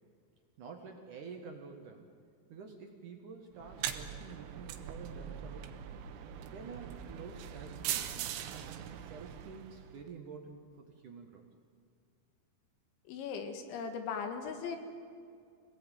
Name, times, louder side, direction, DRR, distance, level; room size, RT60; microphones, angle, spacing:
voice 1, 0.6-2.1 2.5-5.8 6.4-11.4, right 5 dB, 60° right, 3 dB, 2.4 m, -49 dB
sound 1, 3.6-10.0, right 10 dB, 80° right, 3.2 m, -41 dB
voice 2, 13.1-14.8, left 6 dB, 80° left, 6 dB, 4.1 m, -38 dB
26.0 x 18.5 x 9.2 m, 2.2 s
omnidirectional pair, 5.3 m